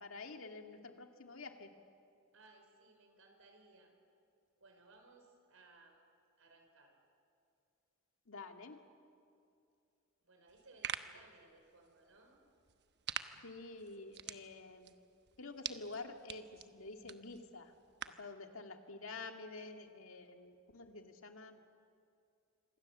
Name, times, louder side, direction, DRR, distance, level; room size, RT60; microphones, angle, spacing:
voice 1, 0.0-1.7 8.3-8.8 13.4-14.9 15.4-17.7 18.1-21.6, left 3 dB, 75° left, 4 dB, 2.1 m, -49 dB
voice 2, 2.3-3.9 4.6-6.0 6.4-6.9 10.2-12.4, right 3 dB, 90° right, 4 dB, 5.0 m, -63 dB
sound 1, 10.5-18.3, right 9 dB, 55° right, 1.0 m, -48 dB
26.5 x 25.5 x 7.4 m, 2.5 s
head